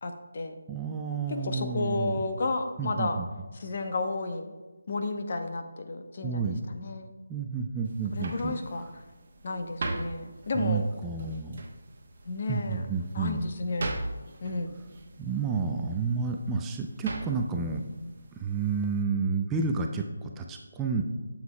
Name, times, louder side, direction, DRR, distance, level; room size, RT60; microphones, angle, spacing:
voice 1, 0.0-0.5 1.3-3.2 3.5-4.5 4.9-7.1 8.1-8.8 9.4-10.9 12.2-12.9 13.1-14.0 14.4-14.7, left 3 dB, 45° left, 6 dB, 0.8 m, -32 dB
voice 2, 0.7-2.2 2.8-3.3 6.2-6.6 7.3-8.6 10.6-11.6 12.5-13.4 15.2-17.8 18.3-21.0, right 5 dB, 10° right, 2 dB, 0.4 m, -30 dB
sound 1, 7.8-19.0, right 2 dB, 45° right, 1.0 m, -41 dB
9.3 x 7.1 x 2.2 m, 1.2 s
figure-of-eight pair, 155°, 0 cm